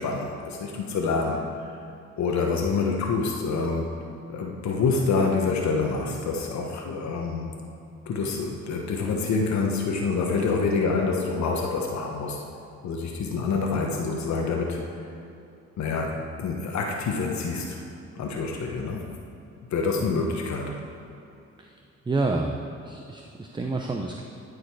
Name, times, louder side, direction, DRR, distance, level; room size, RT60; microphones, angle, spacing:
voice 1, 0.0-1.4 2.2-3.9 4.3-7.5 8.1-12.4 12.8-14.8 15.8-17.8 18.2-19.1 19.7-20.8, left 4 dB, 65° left, 1 dB, 1.0 m, -27 dB
voice 2, 20.0-20.3 22.1-22.6 22.8-24.2, right 3 dB, 15° right, 2 dB, 0.6 m, -29 dB
12.5 x 5.1 x 4.7 m, 2.7 s
cardioid pair, 90°, 30 cm